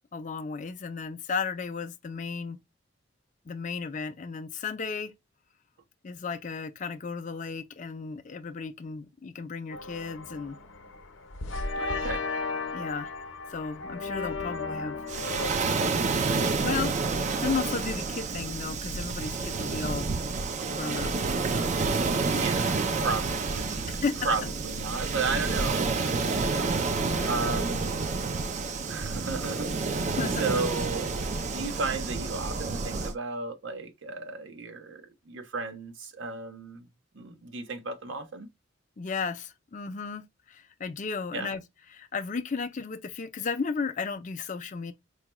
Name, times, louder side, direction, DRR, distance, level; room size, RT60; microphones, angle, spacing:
voice 1, 0.1-2.6 3.5-5.1 6.0-10.6 12.7-13.1 13.5-15.0 16.3-16.9 17.2-20.1 20.6-21.1 21.5-21.8 24.0-24.2 27.0-27.8 30.2-30.7 39.0-40.2 40.5-41.6 41.9-44.9, left 5 dB, 40° left, 0.4 m, -34 dB
sound 1, 9.7-15.5, left 3 dB, 75° left, 0.7 m, -35 dB
voice 2, 11.8-12.2 22.2-24.0 24.2-28.0 28.9-31.1 31.4-36.9 37.1-38.5 41.3-41.5, right 4 dB, 70° right, 0.7 m, -34 dB
Waves surf, 15.1-33.1, right 4 dB, 35° right, 0.4 m, -29 dB
4.7 x 2.2 x 2.9 m
head